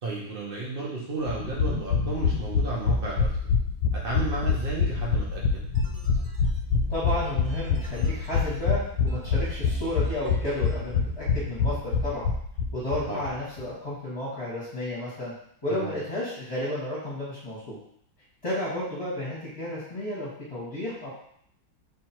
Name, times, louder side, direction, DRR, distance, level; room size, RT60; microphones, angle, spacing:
voice 1, 0.0-3.3 4.0-5.6 13.1-13.2 15.7-15.9, right 3 dB, 75° right, -4 dB, 0.5 m, -33 dB
sound 1, 1.3-13.0 13.3-13.4 13.6-13.7, left 5 dB, 70° left, 1.2 m, -25 dB
sound 2, 5.3-10.7 11.1-11.5 11.9-13.3, right 3 dB, 60° right, 1.1 m, -45 dB
voice 2, 6.9-12.3 12.7-15.3 15.6-17.8 18.4-21.1, left 1 dB, 20° left, -9 dB, 1.2 m, -32 dB
3.5 x 3.4 x 4.4 m, 0.68 s
omnidirectional pair, 2.2 m